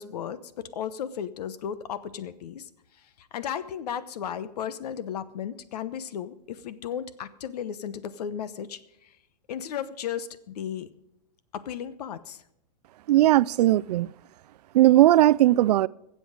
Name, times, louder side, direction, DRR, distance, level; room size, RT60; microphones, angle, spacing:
voice 1, 0.0-2.7 3.2-9.1 9.5-10.9 11.5-12.4, left 9 dB, 70° left, 1.0 m, -35 dB
voice 2, 13.1-14.1 14.7-15.9, right 14 dB, 75° right, 0.4 m, -18 dB
21.5 x 7.9 x 5.0 m
supercardioid pair, 150°, 21 cm